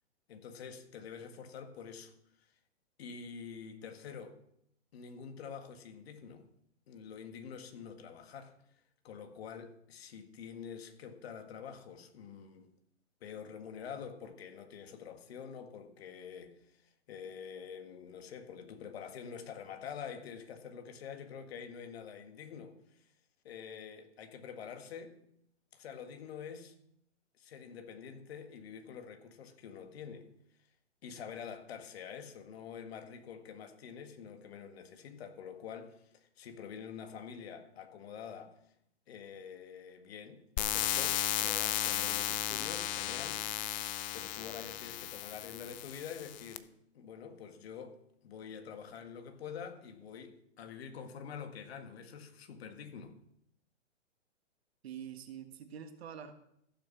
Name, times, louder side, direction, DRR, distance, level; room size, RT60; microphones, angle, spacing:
voice 1, 0.3-2.1 3.0-4.4 4.9-6.5 6.9-8.5 9.0-12.7 13.2-23.1 23.4-25.2 25.7-26.7 27.4-30.3 31.0-38.6 39.1-43.4 44.1-53.2, left 7 dB, 55° left, 1.8 m, -47 dB
sound 1, 40.6-46.6, left 14 dB, 40° left, 0.7 m, -35 dB
voice 2, 54.8-56.3, right 8 dB, 60° right, 1.7 m, -45 dB
15.0 x 7.1 x 6.1 m
hypercardioid pair, 135°, 36 cm